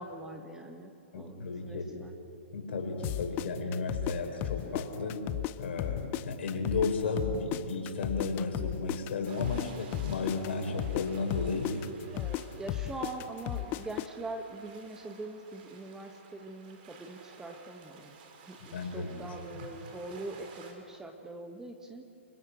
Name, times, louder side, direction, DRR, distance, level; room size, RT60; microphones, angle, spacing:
voice 1, 0.0-2.1 12.1-18.2 18.5-22.1, right 2 dB, 10° right, 4 dB, 1.6 m, -43 dB
voice 2, 1.1-1.9 2.5-5.2 5.6-11.8 18.7-19.1, left 3 dB, 60° left, 3 dB, 5.6 m, -33 dB
sound 1, 3.0-5.5 5.8-9.7 9.9-14.1, left 15 dB, 30° left, 0.7 m, -34 dB
Water in channel, 9.3-20.7, right 5 dB, 45° right, 4.5 m, -54 dB
28.0 x 24.5 x 6.4 m, 2.6 s
hypercardioid pair, 125°, 7 cm